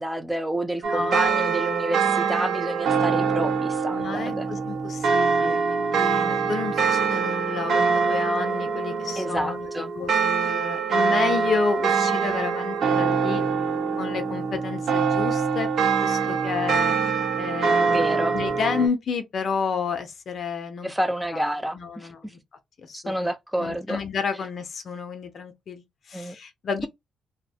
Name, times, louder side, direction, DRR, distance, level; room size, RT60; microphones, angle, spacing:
voice 1, 0.0-4.5 9.2-9.9 17.9-18.3 20.8-22.3 22.9-24.0 26.1-26.4, right 1 dB, 5° right, 0.4 m, -29 dB
voice 2, 0.8-1.3 3.9-9.7 9.9-13.4 14.0-15.7 16.0-17.0 17.4-20.9 21.3-21.5 21.7-22.4 22.8-23.3 23.6-26.9, left 6 dB, 50° left, 0.5 m, -31 dB
sound 1, 0.8-18.9, right 5 dB, 70° right, 0.6 m, -24 dB
2.6 x 2.0 x 2.6 m
cardioid pair, 120°, 0 cm